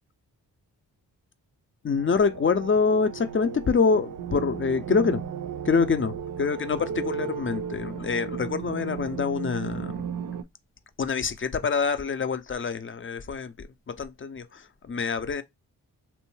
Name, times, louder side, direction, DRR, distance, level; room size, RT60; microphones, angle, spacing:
voice 1, 1.8-5.2 5.6-10.1 11.0-15.4, left 5 dB, 30° left, 0.5 m, -26 dB
sound 1, 2.0-10.4, right 7 dB, 50° right, 0.5 m, -35 dB
2.6 x 2.2 x 3.1 m
supercardioid pair, 40°, 43 cm